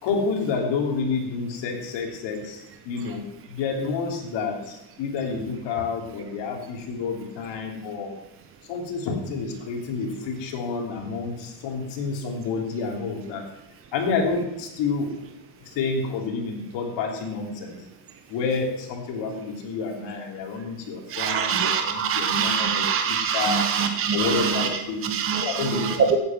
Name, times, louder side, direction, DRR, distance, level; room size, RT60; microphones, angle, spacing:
voice 1, 0.0-8.1 8.7-13.4 13.9-15.1 15.6-17.8 18.3-23.6 24.1-25.0 25.4-26.0, left 4 dB, 60° left, 1 dB, 3.2 m, -29 dB
voice 2, 21.1-24.7 25.0-26.2, right 7 dB, 25° right, 5 dB, 1.0 m, -24 dB
15.5 x 8.8 x 6.0 m, 0.87 s
cardioid pair, 155°, 49 cm